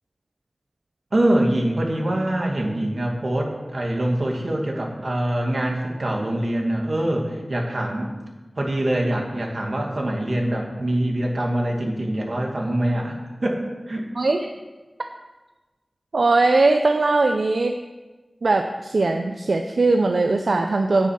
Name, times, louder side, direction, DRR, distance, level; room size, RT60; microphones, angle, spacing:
voice 1, 1.1-8.1 8.6-13.6 13.9-14.1, right 1 dB, 60° right, 1 dB, 2.2 m, -24 dB
voice 2, 14.2-14.5 16.1-17.8 18.4-21.1, right 3 dB, 85° right, 5 dB, 0.6 m, -20 dB
9.6 x 7.4 x 7.5 m, 1.2 s
wide cardioid pair, 45°, 0 cm